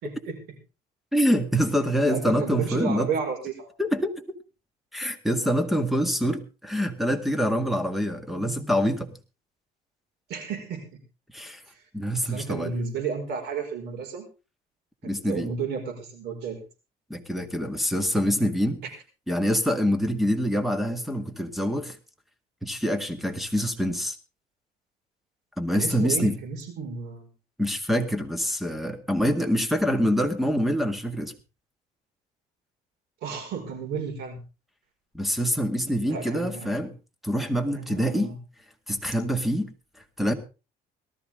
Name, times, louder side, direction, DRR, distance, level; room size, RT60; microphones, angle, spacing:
voice 1, 0.0-0.4 2.1-3.7 10.3-11.0 11.7-11.8 12.3-14.3 15.0-16.6 25.7-27.3 33.2-34.4 36.0-36.7 37.7-38.4, right 5 dB, 80° right, 4 dB, 5.2 m, -32 dB
voice 2, 1.1-3.1 3.8-4.4 4.9-9.1 11.3-11.6 11.9-12.7 15.0-15.5 17.1-18.8 19.3-22.0 22.6-24.2 25.6-26.4 27.6-31.3 35.1-36.9 37.2-38.3 38.9-39.7 40.2-40.3, equal, ahead, 9 dB, 2.0 m, -25 dB
18.5 x 13.0 x 3.7 m, 0.31 s
cardioid pair, 110°, 17 cm